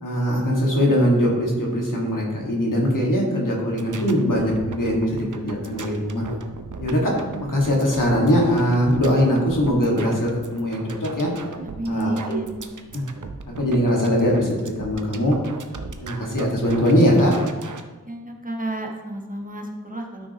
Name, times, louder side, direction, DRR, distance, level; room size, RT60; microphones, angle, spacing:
voice 1, 0.0-6.2 6.8-11.3 11.9-12.4 12.9-13.0 13.6-15.4 16.0-17.3, equal, 75° left, -2 dB, 1.9 m, -21 dB
sound 1, 3.7-17.8, right 4 dB, 70° right, 0.7 m, -37 dB
voice 2, 11.6-12.5 18.0-20.3, right 2 dB, 25° right, 0 dB, 1.3 m, -30 dB
12.0 x 6.2 x 3.0 m, 1.3 s
wide cardioid pair, 45°, 32 cm